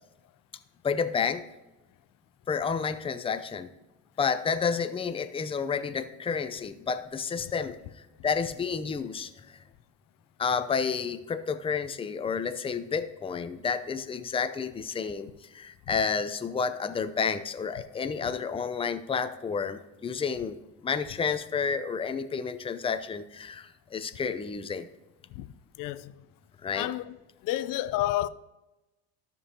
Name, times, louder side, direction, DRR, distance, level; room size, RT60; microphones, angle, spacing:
voice 1, 0.8-1.4 2.5-3.7 4.2-9.6 10.4-24.9 26.6-26.9, left 6 dB, 15° left, 0.6 m, -30 dB
voice 2, 25.8-26.1 26.7-27.1 27.4-28.3, left 14 dB, 55° left, 0.6 m, -30 dB
13.5 x 5.4 x 2.9 m
supercardioid pair, 95°, 39 cm